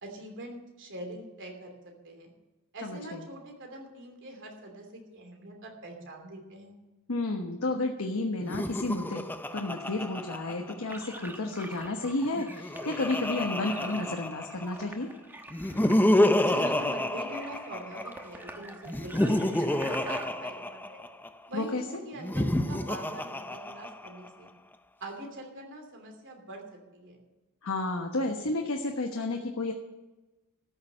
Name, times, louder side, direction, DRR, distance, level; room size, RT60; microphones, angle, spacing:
voice 1, 0.0-1.7 2.0-2.3 2.7-6.8 16.4-21.0 21.5-24.5 25.0-27.2, right 1 dB, 60° right, 3 dB, 3.0 m, -43 dB
voice 2, 2.8-3.2 7.1-15.1 21.5-21.8 27.6-29.7, left 2 dB, 70° left, 2 dB, 1.2 m, -31 dB
Laughter, 8.4-11.2 12.3-14.8 15.5-18.2 18.9-21.3 22.2-24.3, left 1 dB, 10° left, 0.5 m, -29 dB
sound 1, 10.9-20.3, right 1 dB, 10° right, 1.1 m, -46 dB
14.0 x 6.8 x 8.8 m, 1.1 s
head